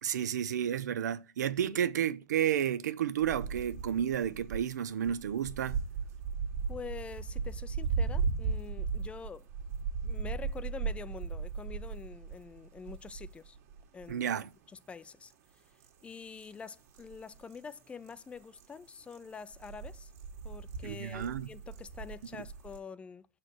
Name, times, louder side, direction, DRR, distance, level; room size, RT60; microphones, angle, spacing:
voice 1, 0.0-5.8 14.1-14.5 20.8-21.5, right 9 dB, 90° right, 0.6 m, -31 dB
sound 1, 3.2-4.6 4.9-14.4 14.8-14.9 15.2-15.3 15.8-16.1 16.4-18.1 18.4-18.7 18.9-22.8, right 5 dB, 60° right, 1.7 m, -37 dB
voice 2, 6.7-9.5 10.0-13.6 13.9-14.3 14.7-15.3 16.0-20.1 20.4-23.3, left 5 dB, 15° left, 0.4 m, -46 dB
6.3 x 4.5 x 6.2 m
supercardioid pair, 135°, 9 cm